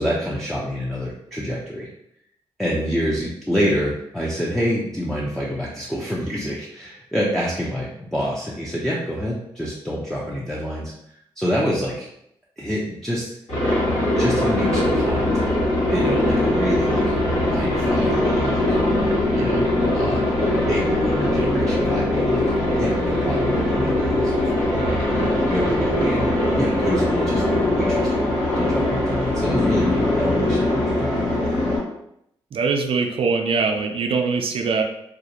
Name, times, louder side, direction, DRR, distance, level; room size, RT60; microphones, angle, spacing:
voice 1, 0.0-1.9 2.6-12.1 12.6-13.3 14.1-15.4 15.9-17.1 17.5-18.8 19.3-20.3 20.5-26.3 26.6-27.4 27.7-28.2 28.6-31.6, equal, 5° left, -5 dB, 0.5 m, -27 dB
Aircraft, 13.5-31.8, left 1 dB, 85° left, 1.4 m, -21 dB
sound 1, 13.8-24.7, left 2 dB, 30° left, 1.4 m, -29 dB
voice 2, 32.5-34.8, right 4 dB, 60° right, 4 dB, 0.4 m, -22 dB
2.4 x 2.1 x 2.8 m, 0.77 s
supercardioid pair, 50°, 11 cm